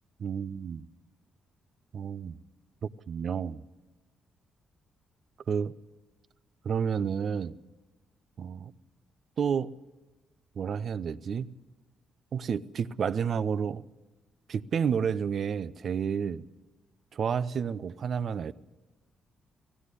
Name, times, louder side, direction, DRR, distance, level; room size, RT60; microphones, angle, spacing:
voice 1, 0.2-0.8 1.9-2.4 2.8-3.6 5.5-5.7 6.6-7.6 8.4-8.7 9.4-9.7 10.6-11.5 12.3-13.8 14.5-16.4 17.1-18.5, right 7 dB, 60° right, 0.7 m, -30 dB
18.0 x 15.5 x 9.8 m
supercardioid pair, 60°, 0 cm